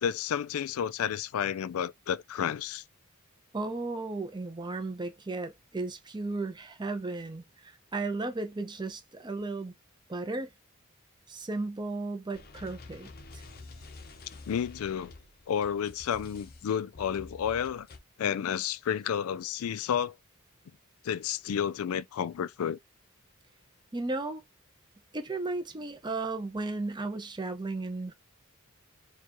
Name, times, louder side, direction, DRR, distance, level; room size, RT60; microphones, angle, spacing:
voice 1, 0.0-2.8 14.5-15.1 15.5-17.9 18.2-20.1 21.0-22.8, left 8 dB, 80° left, 0.4 m, -31 dB
voice 2, 3.5-9.7 10.1-10.5 11.3-13.1 13.3-13.4 23.9-24.4 25.1-28.1, right 3 dB, 20° right, 0.6 m, -35 dB
sound 1, 12.3-18.0, left 3 dB, 45° left, 0.6 m, -48 dB
4.5 x 2.4 x 2.9 m
head